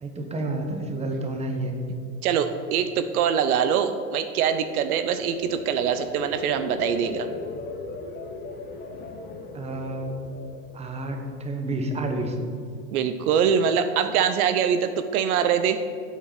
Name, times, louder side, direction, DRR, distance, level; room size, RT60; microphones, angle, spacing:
voice 1, 0.0-1.8 9.5-10.4 10.7-12.4, right 2 dB, 15° right, 4 dB, 1.1 m, -30 dB
voice 2, 2.2-7.3 12.9-15.8, right 7 dB, 60° right, 9 dB, 0.8 m, -23 dB
sound 1, 4.3-11.5 11.9-12.3, left 3 dB, 20° left, 0.9 m, -38 dB
8.2 x 7.8 x 5.9 m, 2.5 s
hypercardioid pair, 125°, 50 cm